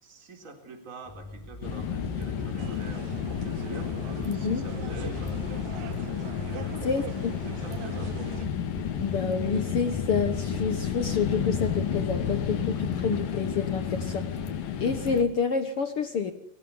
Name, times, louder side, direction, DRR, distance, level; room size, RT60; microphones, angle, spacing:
voice 1, 0.0-3.9 4.2-5.6 6.4-8.4, right 3 dB, 20° right, 5 dB, 4.0 m, -45 dB
sound 1, 1.0-14.4, left 3 dB, 10° left, 3.6 m, -44 dB
sound 2, 1.6-15.2, left 7 dB, 75° left, 3.7 m, -31 dB
sound 3, 2.6-8.5, right 10 dB, 65° right, 2.3 m, -43 dB
voice 2, 4.3-4.6 6.8-7.3 9.0-14.3 14.8-16.3, left 5 dB, 55° left, 9 dB, 1.8 m, -28 dB
23.5 x 17.0 x 9.8 m, 0.73 s
omnidirectional pair, 4.0 m